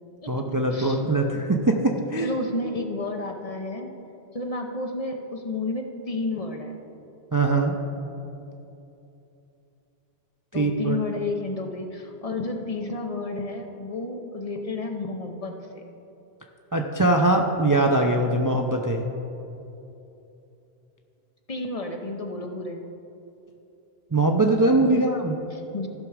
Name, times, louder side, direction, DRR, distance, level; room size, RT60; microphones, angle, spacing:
voice 1, 0.3-2.3 7.3-7.7 10.5-11.0 16.7-19.0 24.1-25.4, right 2 dB, 25° right, 2 dB, 0.4 m, -22 dB
voice 2, 2.2-3.9 4.3-6.8 10.5-15.8 21.5-22.8 24.8-25.1 25.5-25.9, left 2 dB, 40° left, 3 dB, 0.7 m, -31 dB
14.5 x 6.1 x 4.8 m, 2.9 s
omnidirectional pair, 1.1 m